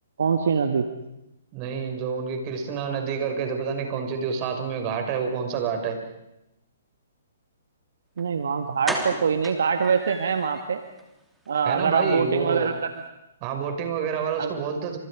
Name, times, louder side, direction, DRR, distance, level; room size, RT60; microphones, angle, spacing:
voice 1, 0.2-0.9 8.2-10.8 11.5-12.7 14.4-14.5, right 6 dB, 70° right, 7 dB, 1.8 m, -24 dB
voice 2, 1.5-6.0 11.6-12.7 13.4-15.0, right 6 dB, 35° right, 4 dB, 5.7 m, -28 dB
sound 1, 8.2-8.3 8.8-10.6 11.0-11.1 11.4-11.6 11.9-12.0, right 1 dB, 5° right, 3.2 m, -33 dB
30.0 x 27.5 x 5.0 m, 0.91 s
hypercardioid pair, 130°, 0 cm